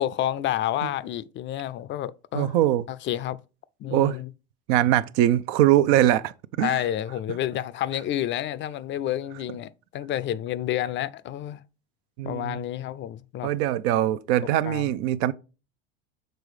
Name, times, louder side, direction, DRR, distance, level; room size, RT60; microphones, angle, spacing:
voice 1, 0.0-2.6 3.1-3.4 3.8-4.3 6.6-11.6 12.2-13.5 14.6-14.8, left 12 dB, 40° left, 0.5 m, -29 dB
voice 2, 2.3-2.9 3.9-4.2 4.7-6.8 12.2-12.6 13.4-15.3, right 13 dB, 60° right, 0.6 m, -22 dB
6.9 x 3.9 x 4.8 m
hypercardioid pair, 90°, 30 cm